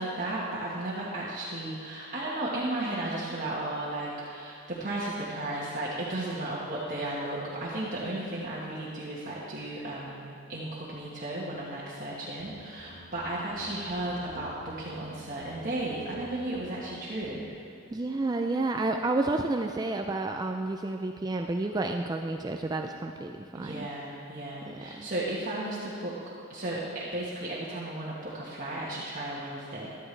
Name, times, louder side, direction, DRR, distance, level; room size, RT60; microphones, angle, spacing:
voice 1, 0.0-17.5 23.5-26.2 26.5-30.0, right 1 dB, 40° right, -7 dB, 1.3 m, -34 dB
sound 1, 12.4-16.9 17.2-17.5, left 1 dB, ahead, 2.9 m, -50 dB
voice 2, 17.9-23.9 24.7-25.1, right 2 dB, 20° right, 4 dB, 0.3 m, -30 dB
13.5 x 12.0 x 3.3 m, 2.6 s
head